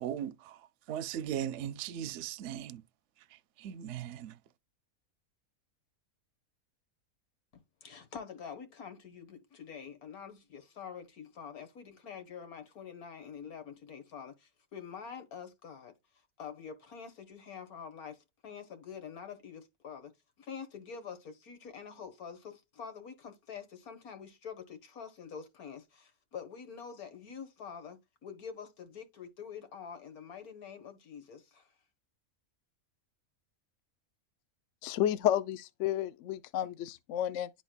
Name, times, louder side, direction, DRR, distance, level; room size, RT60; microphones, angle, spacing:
voice 1, 0.0-2.8 3.6-4.4, right 10 dB, 65° right, 0.8 m, -38 dB
voice 2, 7.5-15.9 16.4-31.7, left 7 dB, 80° left, 1.8 m, -46 dB
voice 3, 34.8-37.5, left 11 dB, 65° left, 0.9 m, -31 dB
11.5 x 4.1 x 2.2 m
omnidirectional pair, 1.5 m